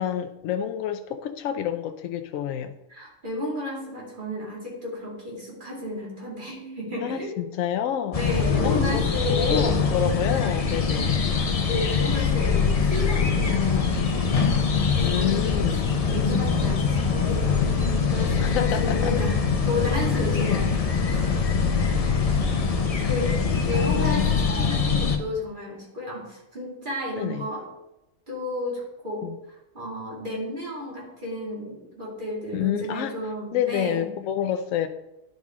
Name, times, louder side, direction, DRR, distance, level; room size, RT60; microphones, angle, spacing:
voice 1, 0.0-2.7 7.0-8.2 8.6-11.2 15.0-15.9 18.4-19.1 20.5-20.7 23.7-24.4 27.2-27.4 29.2-29.4 32.5-33.1 33.5-34.9, left 10 dB, 85° left, 8 dB, 1.0 m, -28 dB
voice 2, 2.9-7.4 8.1-9.7 11.7-15.6 16.1-21.4 22.3-22.7 23.1-24.3 24.6-27.7 28.3-34.1, left 1 dB, 40° right, -4 dB, 2.6 m, -33 dB
sound 1, 8.1-25.2, left 5 dB, 40° left, 0.6 m, -23 dB
10.0 x 5.2 x 3.6 m, 0.90 s
omnidirectional pair, 1.3 m